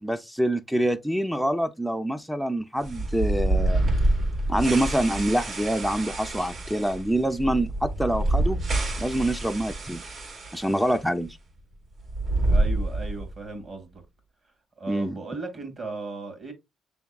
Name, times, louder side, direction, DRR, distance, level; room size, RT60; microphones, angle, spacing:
voice 1, 0.0-3.9 4.5-8.6 9.0-10.0 10.5-11.4 14.9-15.2, right 1 dB, ahead, 0.4 m, -26 dB
sound 1, 2.8-11.0 11.3-11.4 12.0-13.4, right 2 dB, 60° right, 2.0 m, -27 dB
voice 2, 12.5-14.0 14.8-16.5, right 3 dB, 45° right, 1.9 m, -36 dB
6.8 x 3.5 x 2.3 m
cardioid pair, 90°, 0 cm